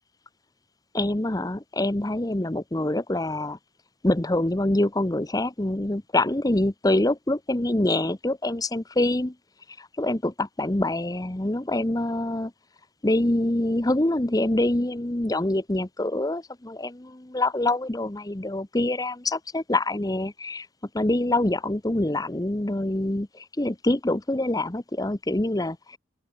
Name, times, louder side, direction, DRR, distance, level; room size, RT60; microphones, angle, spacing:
voice 1, 0.9-3.6 4.0-9.3 9.8-12.5 13.0-20.7 20.9-26.0, left 1 dB, 15° left, 0.8 m, -25 dB
open air
head